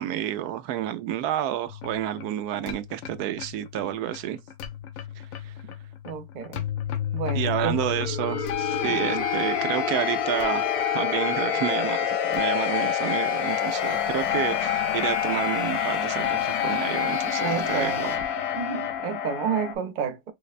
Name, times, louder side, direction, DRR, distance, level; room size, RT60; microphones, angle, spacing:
voice 1, 0.0-4.4 5.4-5.5 7.3-10.7 10.9-18.2, right 12 dB, 85° right, 1.1 m, -30 dB
sound 1, 1.7-19.7, left 9 dB, 70° left, 1.0 m, -28 dB
voice 2, 6.0-6.6 7.1-7.8 8.8-9.2 17.4-18.0 18.6-20.3, right 7 dB, 50° right, 0.6 m, -30 dB
4.9 x 2.1 x 2.4 m
omnidirectional pair, 1.6 m